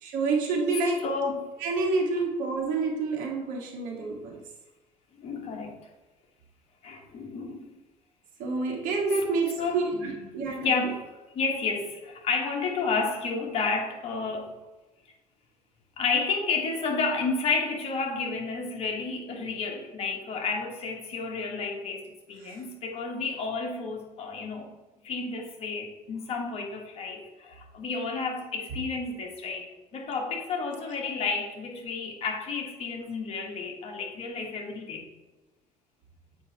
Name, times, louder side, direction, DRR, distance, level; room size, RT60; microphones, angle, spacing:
voice 1, 0.0-1.0 1.6-4.3 8.4-10.7 22.4-22.6, right 3 dB, 70° right, 1 dB, 1.5 m, -28 dB
voice 2, 1.0-1.5 5.2-5.8 6.8-7.7 8.7-8.8 9.1-9.2 9.6-14.6 16.0-22.0 22.3-24.7 25.0-35.1, left 4 dB, 45° left, 1 dB, 1.3 m, -31 dB
7.7 x 5.1 x 2.8 m, 1.1 s
cardioid pair, 135°, 14 cm